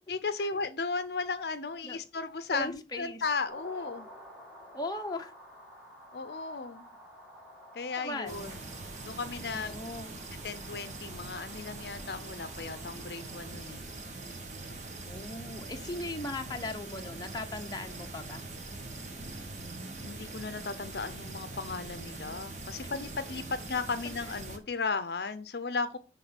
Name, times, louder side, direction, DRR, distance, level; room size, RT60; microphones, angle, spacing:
voice 1, 0.1-4.1 6.1-6.9 7.7-8.5 9.0-9.8 10.4-13.8 20.0-26.0, left 4 dB, 65° left, 0.7 m, -35 dB
voice 2, 2.5-3.2 4.7-5.3 8.0-8.5 9.5-10.1 15.0-18.4, left 2 dB, 20° left, 0.8 m, -38 dB
sound 1, 3.5-13.7, equal, 5° right, 2.1 m, -52 dB
sound 2, 8.3-24.6, right 2 dB, 40° right, 1.4 m, -43 dB
9.8 x 3.8 x 5.9 m
head